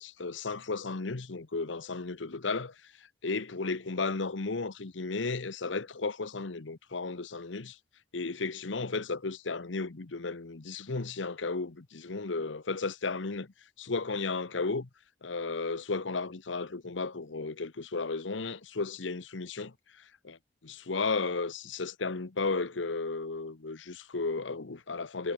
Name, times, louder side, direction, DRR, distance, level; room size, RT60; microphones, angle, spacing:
voice 1, 0.0-2.7 3.2-7.8 8.1-13.5 13.8-14.9 15.2-19.7 20.2-20.4 20.6-25.3, left 3 dB, 90° left, 1.0 m, -34 dB
head